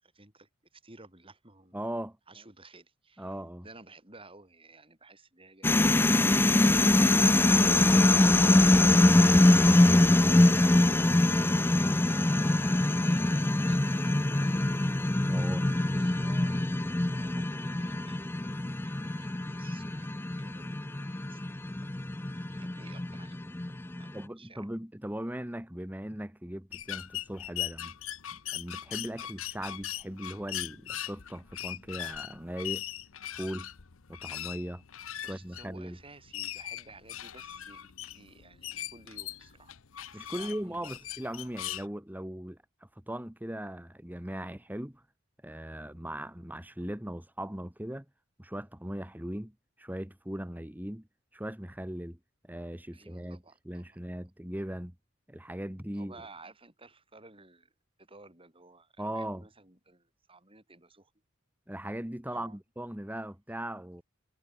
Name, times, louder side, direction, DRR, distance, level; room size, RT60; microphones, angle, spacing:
voice 1, 0.0-1.8 2.3-6.8 11.2-14.8 15.3-15.5 15.9-18.6 18.8-21.8 22.2-24.7 35.2-37.9 38.1-39.8 40.1-41.0 41.4-41.6 52.9-53.8 55.9-57.7 58.0-61.1 62.3-62.6, right 3 dB, 25° right, 7.6 m, -55 dB
voice 2, 1.7-2.2 3.2-3.7 15.3-15.7 24.1-27.9 28.3-32.8 33.3-33.7 34.1-34.8 35.2-36.0 40.1-42.6 43.0-45.0 45.4-48.0 48.4-51.1 51.3-52.2 52.4-54.9 55.3-56.2 59.0-59.4 61.7-64.0, right 1 dB, 10° right, 1.4 m, -39 dB
sound 1, 5.6-24.1, left 1 dB, 10° left, 0.4 m, -24 dB
sound 2, 26.7-41.8, left 12 dB, 75° left, 0.9 m, -40 dB
head